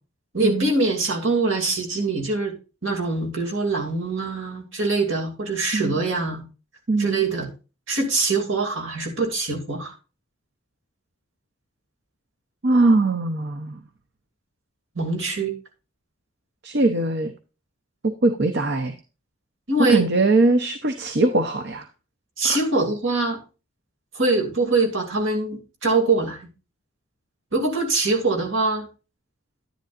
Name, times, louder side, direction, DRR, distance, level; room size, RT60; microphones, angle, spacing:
voice 1, 0.3-2.5 2.8-6.4 7.0-7.5 7.9-9.9 15.0-15.5 19.7-20.0 22.4-23.4 24.1-26.4 27.5-28.9, right 3 dB, 70° right, 2 dB, 2.6 m, -23 dB
voice 2, 6.9-7.2 12.6-13.8 16.6-17.3 18.0-18.9 19.9-21.9 22.4-22.6, right 2 dB, 55° right, 8 dB, 0.8 m, -21 dB
10.5 x 10.5 x 2.5 m, 0.32 s
head